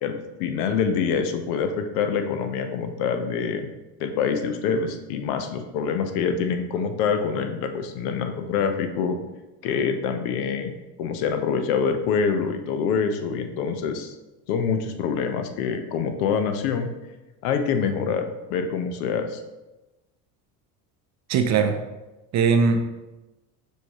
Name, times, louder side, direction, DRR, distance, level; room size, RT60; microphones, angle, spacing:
voice 1, 0.0-3.7 4.0-9.2 9.6-10.7 11.0-14.1 14.5-16.9 17.4-19.4, left 6 dB, 75° left, 7 dB, 0.7 m, -25 dB
voice 2, 21.3-21.8 22.3-22.9, right 5 dB, 40° right, 6 dB, 0.5 m, -20 dB
6.2 x 2.7 x 2.9 m, 1.0 s
hypercardioid pair, 80°, 47 cm